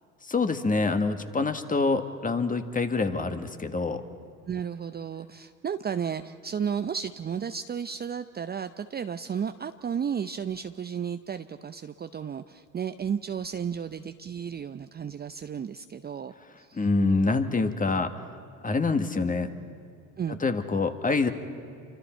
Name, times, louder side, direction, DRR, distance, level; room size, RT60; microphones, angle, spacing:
voice 1, 0.2-4.0 16.7-18.1 18.6-19.5 20.4-21.3, left 3 dB, 20° left, 7 dB, 1.7 m, -26 dB
voice 2, 4.5-16.9 20.2-20.4, right 7 dB, 25° right, 9 dB, 0.6 m, -33 dB
28.5 x 25.0 x 4.5 m, 2.5 s
hypercardioid pair, 75°, 39 cm